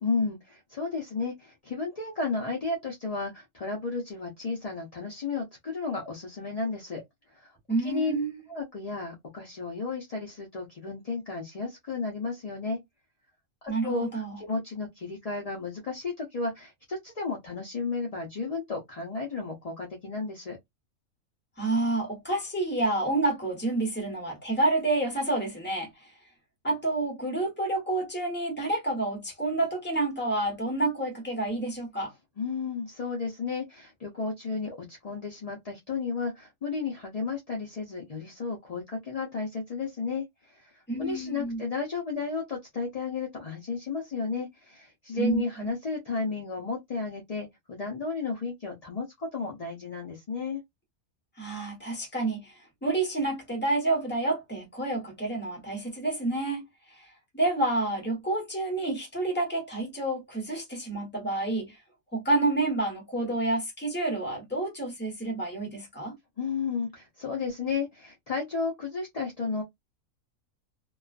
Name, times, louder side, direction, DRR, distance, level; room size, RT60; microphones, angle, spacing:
voice 1, 0.0-7.0 7.3-7.5 7.8-8.1 8.5-12.8 13.6-20.6 32.4-50.6 66.4-69.6, left 4 dB, 45° left, 0.5 m, -33 dB
voice 2, 7.7-8.3 13.7-14.4 21.6-26.1 26.6-32.1 40.9-41.6 45.1-45.7 51.4-61.8 62.1-66.2, right 2 dB, 10° left, 0.8 m, -29 dB
2.3 x 2.3 x 2.3 m
omnidirectional pair, 1.4 m